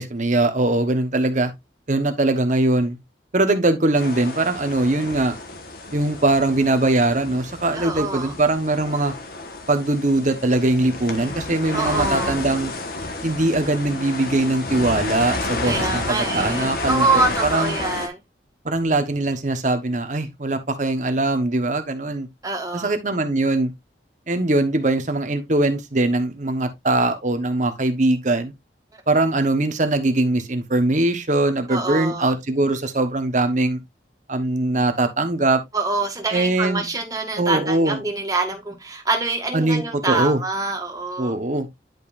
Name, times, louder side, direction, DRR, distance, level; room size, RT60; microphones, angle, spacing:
voice 1, 0.0-1.5 1.9-3.0 3.3-5.3 5.9-9.1 9.7-12.7 13.2-17.1 17.5-17.8 18.6-22.3 22.7-23.7 24.3-28.5 29.1-33.8 34.3-35.6 36.3-36.8 37.4-38.0 39.5-40.4 41.2-41.7, right 2 dB, 45° right, 1.1 m, -21 dB
sound 1, 3.9-18.1, left 2 dB, 55° left, 1.4 m, -31 dB
voice 2, 7.7-8.3 11.7-12.4 15.6-18.2 22.4-22.9 31.7-32.3 35.7-41.4, right 3 dB, 20° right, 1.8 m, -25 dB
10.5 x 5.3 x 2.5 m
head